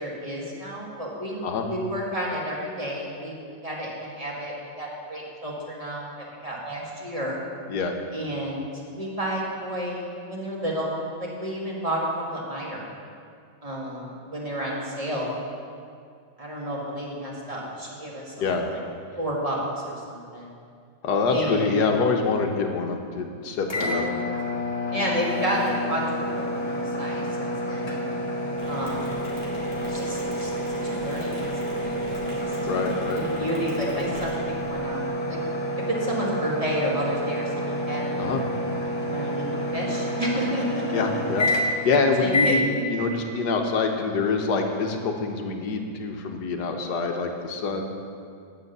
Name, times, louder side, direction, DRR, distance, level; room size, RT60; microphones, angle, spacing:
voice 1, 0.0-1.4 1.7-3.4 3.6-7.4 8.1-8.7 8.9-12.8 13.6-15.3 16.4-18.8 19.2-20.5 21.3-21.7 24.9-28.1 28.7-29.2 29.9-32.5 33.2-35.4 35.9-38.3 39.0-41.0 42.2-42.6, equal, 20° right, -4 dB, 1.5 m, -31 dB
voice 2, 21.0-24.0 32.7-33.2 38.2-38.4 40.9-47.9, left 4 dB, 65° left, 4 dB, 1.3 m, -25 dB
sound 1, 23.7-41.9 42.3-42.6, equal, 40° left, 0.4 m, -29 dB
Mechanisms, 28.6-34.8, right 1 dB, 80° right, 2.8 m, -40 dB
9.7 x 6.5 x 6.7 m, 2.3 s
omnidirectional pair, 2.1 m